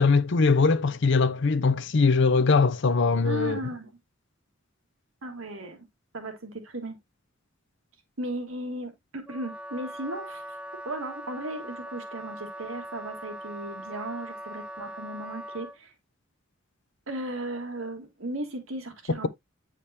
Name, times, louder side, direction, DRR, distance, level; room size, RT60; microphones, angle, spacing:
voice 1, 0.0-3.6, left 4 dB, 60° left, 0.6 m, -21 dB
voice 2, 3.2-4.0 5.2-5.8 6.1-7.0 8.2-10.4 10.9-15.9 17.1-19.3, right 1 dB, 85° right, 1.7 m, -36 dB
Wind instrument woodwind instrument, 9.3-15.8, right 1 dB, 5° right, 0.5 m, -40 dB
8.8 x 5.0 x 2.7 m
head